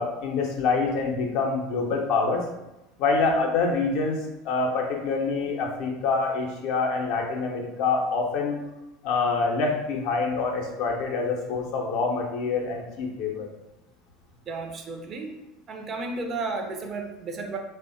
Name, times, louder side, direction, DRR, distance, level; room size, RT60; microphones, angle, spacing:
voice 1, 0.0-2.4 3.0-4.2 4.4-8.6 9.0-13.5, left 4 dB, 55° left, 1 dB, 0.5 m, -26 dB
voice 2, 14.5-15.3 15.7-17.6, right 3 dB, 35° right, 3 dB, 0.4 m, -33 dB
3.2 x 2.0 x 2.5 m, 0.95 s
figure-of-eight pair, 70°, 0 cm